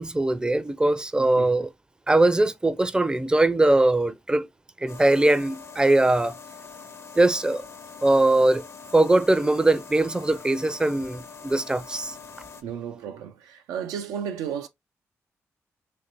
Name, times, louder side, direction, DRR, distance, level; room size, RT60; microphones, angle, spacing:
voice 1, 0.0-1.7 2.1-4.5 4.8-6.4 7.2-7.6 8.0-8.6 8.9-12.1, right 2 dB, 15° right, 0.4 m, -21 dB
voice 2, 1.2-1.5 12.6-14.7, right 8 dB, 90° right, 0.3 m, -33 dB
sound 1, 4.9-12.6, left 5 dB, 50° left, 0.5 m, -44 dB
3.1 x 2.5 x 2.9 m
supercardioid pair, 50°, 6 cm